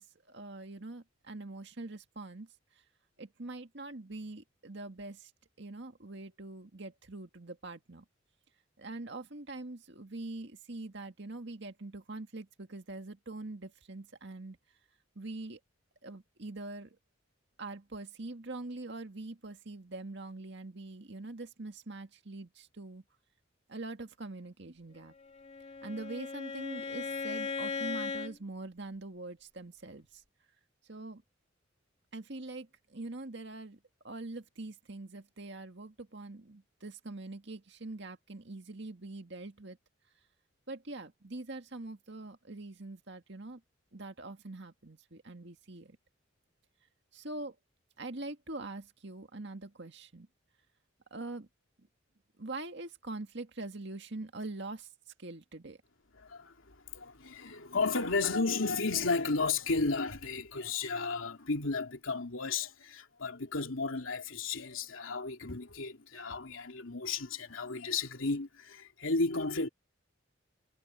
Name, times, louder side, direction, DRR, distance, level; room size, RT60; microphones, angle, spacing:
voice 1, 0.0-2.5 3.2-5.3 5.6-8.0 8.8-14.6 15.2-15.6 16.0-17.0 17.6-23.0 23.7-25.1 25.8-30.2 30.9-31.2 32.1-33.8 34.0-39.8 40.7-43.6 43.9-46.0 47.1-47.6 48.0-50.3 51.1-51.5 52.4-54.9 55.2-55.8, right 2 dB, 60° right, 1.9 m, -43 dB
Bowed string instrument, 25.2-28.4, left 4 dB, 30° left, 2.5 m, -38 dB
voice 2, 56.2-69.7, left 4 dB, 85° left, 2.8 m, -33 dB
head